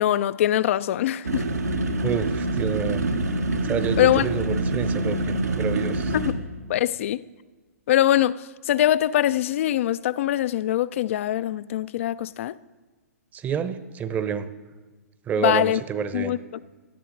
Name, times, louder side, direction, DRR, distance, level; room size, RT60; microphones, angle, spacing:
voice 1, 0.0-1.4 4.0-4.2 6.1-6.4 6.7-7.2 7.9-8.4 8.7-12.5 15.4-15.8 16.1-16.4, left 12 dB, 55° left, 0.4 m, -22 dB
sound 1, 1.2-6.3, right 2 dB, 85° right, 1.6 m, -26 dB
voice 2, 2.0-3.0 3.6-6.1 13.3-14.5 15.3-16.4, right 7 dB, 20° right, 0.8 m, -28 dB
18.0 x 12.0 x 3.9 m
hypercardioid pair, 125°, 8 cm